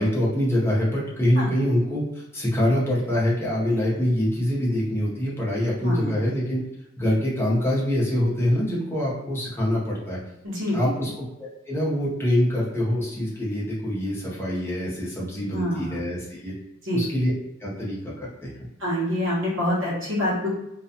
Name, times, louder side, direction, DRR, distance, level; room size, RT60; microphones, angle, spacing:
voice 1, 0.0-6.6 7.0-10.2 10.7-11.1 11.4-16.5 16.9-17.3 17.6-18.5, left 1 dB, 15° left, -7 dB, 0.8 m, -24 dB
voice 2, 5.8-6.2 10.4-10.8 15.5-15.9 16.8-17.0 18.8-20.5, left 1 dB, 70° right, -5 dB, 0.9 m, -26 dB
2.4 x 2.3 x 2.6 m, 0.88 s
head